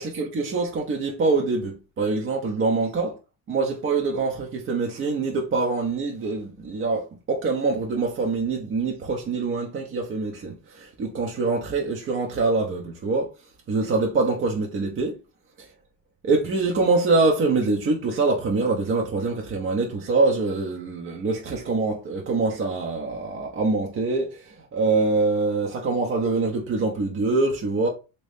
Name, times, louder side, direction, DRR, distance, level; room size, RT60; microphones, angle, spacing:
voice 1, 0.0-3.2 3.5-13.3 13.7-15.2 15.6-15.7 16.2-27.9, right 3 dB, 30° right, 0.6 m, -24 dB
3.0 x 2.7 x 3.4 m
cardioid pair, 115°, 42 cm